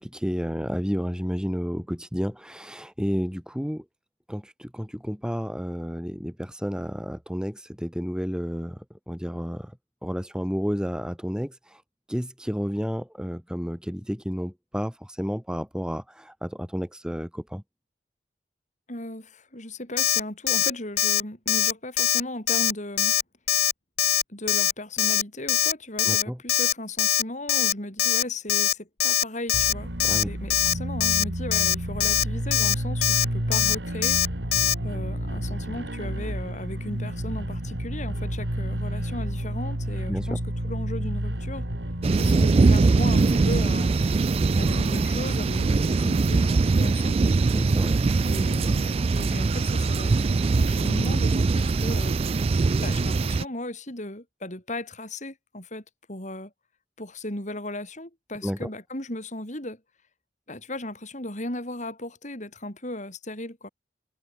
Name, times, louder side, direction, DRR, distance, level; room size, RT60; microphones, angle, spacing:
voice 1, 0.0-3.8 4.3-9.8 10.0-11.8 12.1-17.6 26.0-26.4 30.0-30.3 40.1-40.4 47.5-47.9 58.4-58.7, equal, 5° right, 4.5 m, -31 dB
voice 2, 18.9-23.2 24.3-34.2 34.8-41.7 42.2-44.0 44.6-47.3 48.2-52.2 52.8-56.5 57.0-59.8 60.5-63.7, left 1 dB, 40° left, 7.2 m, -36 dB
Alarm, 20.0-20.2 20.5-20.7 21.0-21.2 21.5-21.7 22.0-22.2 22.5-22.7 23.0-23.2 23.5-23.7 24.0-24.2 24.5-24.7 25.0-25.2 25.5-25.7 26.0-26.2 26.5-26.7 27.0-27.2 27.5-27.7 28.0-28.2 28.5-28.7 29.0-29.2 29.5-29.7 30.0-30.2 30.5-30.7 31.0-31.2 31.5-31.7 32.0-32.2 32.5-32.7 33.0-33.2 33.5-33.8 34.0-34.3 34.5-34.7, left 12 dB, 60° left, 1.9 m, -22 dB
sound 1, 29.5-43.5, right 1 dB, 80° right, 4.1 m, -31 dB
sound 2, 42.0-53.4, right 3 dB, 35° right, 0.3 m, -22 dB
head